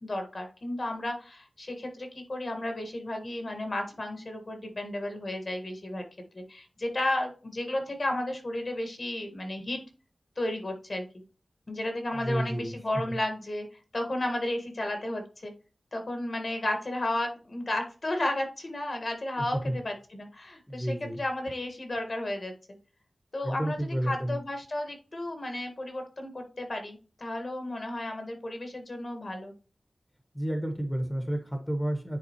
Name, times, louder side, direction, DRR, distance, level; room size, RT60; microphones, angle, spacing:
voice 1, 0.0-6.0 6.3-9.8 10.4-11.0 11.7-13.7 13.9-15.5 15.9-22.5 23.3-23.8 24.1-29.5, left 1 dB, 50° left, 4 dB, 1.5 m, -33 dB
voice 2, 12.1-12.7 13.1-13.2 19.4-19.8 20.7-21.2 23.4-24.4 30.3-32.2, right 1 dB, 10° left, 4 dB, 1.2 m, -31 dB
9.7 x 3.8 x 2.9 m, 0.36 s
wide cardioid pair, 90°, 0 cm